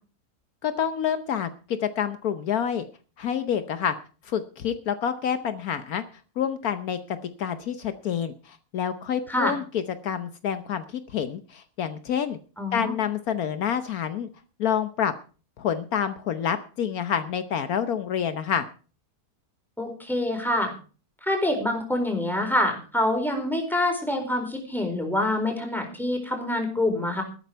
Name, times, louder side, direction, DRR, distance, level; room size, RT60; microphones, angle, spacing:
voice 1, 0.6-2.9 3.2-3.9 4.2-6.0 6.4-12.4 12.7-14.3 14.6-15.1 15.6-18.7, left 8 dB, 75° left, 10 dB, 1.3 m, -28 dB
voice 2, 12.6-12.9 19.8-20.7 21.2-27.2, left 1 dB, ahead, 3 dB, 4.4 m, -26 dB
13.5 x 12.5 x 4.6 m, 0.37 s
omnidirectional pair, 1.6 m